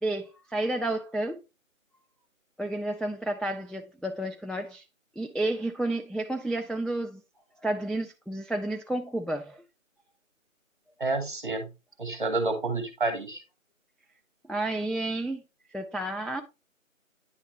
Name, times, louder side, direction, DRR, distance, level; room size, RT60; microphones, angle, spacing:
voice 1, 0.0-1.4 2.6-4.8 5.2-7.2 7.6-9.6 14.5-15.4 15.7-16.4, right 1 dB, ahead, 0.3 m, -31 dB
voice 2, 11.0-11.7 12.0-13.4, right 3 dB, 35° right, 1.7 m, -29 dB
10.0 x 3.7 x 3.3 m
figure-of-eight pair, 165°, 41 cm